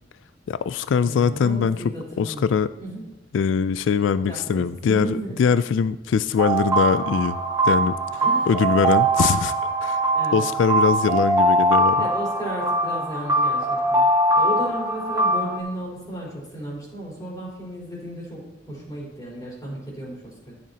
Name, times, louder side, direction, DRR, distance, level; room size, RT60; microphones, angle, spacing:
voice 1, 0.5-1.8 2.2-2.7 3.3-7.4 7.6-9.5 9.8-10.0 10.3-12.1, left 6 dB, 75° left, 15 dB, 0.3 m, -22 dB
voice 2, 1.0-2.5 2.8-3.0 4.3-5.4 8.2-8.5 10.1-10.4 11.0-11.2 12.0-14.1 14.3-20.6, right 1 dB, 20° left, -6 dB, 3.9 m, -34 dB
sound 1, 6.4-15.6, right 2 dB, 15° right, 1.6 m, -21 dB
14.0 x 7.4 x 2.9 m, 0.97 s
head